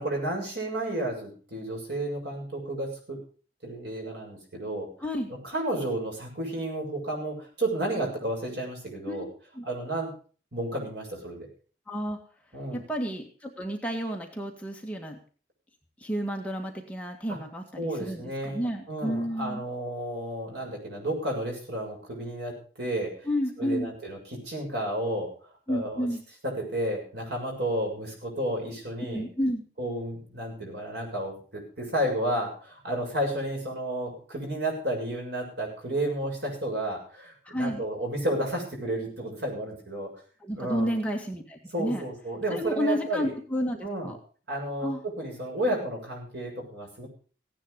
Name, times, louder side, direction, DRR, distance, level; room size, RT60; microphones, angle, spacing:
voice 1, 0.0-3.2 3.6-4.9 5.3-9.3 9.6-10.1 10.5-11.5 12.5-12.8 17.3-17.4 17.8-23.3 23.6-25.3 25.7-26.1 26.4-29.3 29.8-40.1 40.5-41.0 41.7-43.3 43.8-44.1 44.5-47.1, right 1 dB, 70° right, 0 dB, 7.2 m, -32 dB
voice 2, 5.0-5.3 9.1-9.3 9.6-9.7 11.9-12.2 12.7-15.2 16.0-19.6 23.3-23.9 25.7-26.2 29.0-29.6 37.5-37.8 40.4-42.0 42.5-44.2 44.8-45.0, equal, 5° left, 1 dB, 1.8 m, -31 dB
17.0 x 10.0 x 5.3 m, 0.39 s
head